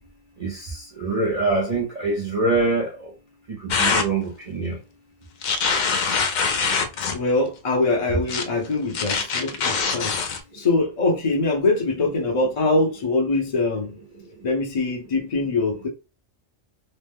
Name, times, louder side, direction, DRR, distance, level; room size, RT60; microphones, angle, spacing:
voice 1, 1.0-2.9 3.6-4.2 4.5-4.7, right 3 dB, 40° right, 0.7 m, -23 dB
sound 1, 3.7-4.1 5.4-7.2 8.3-8.4 8.9-10.4, left 5 dB, 75° left, 0.4 m, -23 dB
voice 2, 7.1-10.1 10.5-13.9 14.4-15.9, left 3 dB, 30° left, 0.7 m, -23 dB
3.0 x 2.0 x 3.5 m
omnidirectional pair, 1.3 m